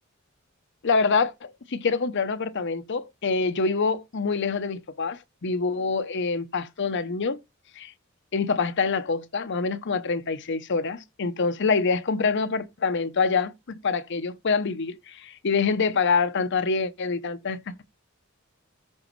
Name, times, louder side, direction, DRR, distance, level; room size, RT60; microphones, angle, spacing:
voice 1, 0.8-7.4 7.8-7.9 8.3-17.8, left 4 dB, 60° left, 0.7 m, -26 dB
14.0 x 5.1 x 3.1 m
head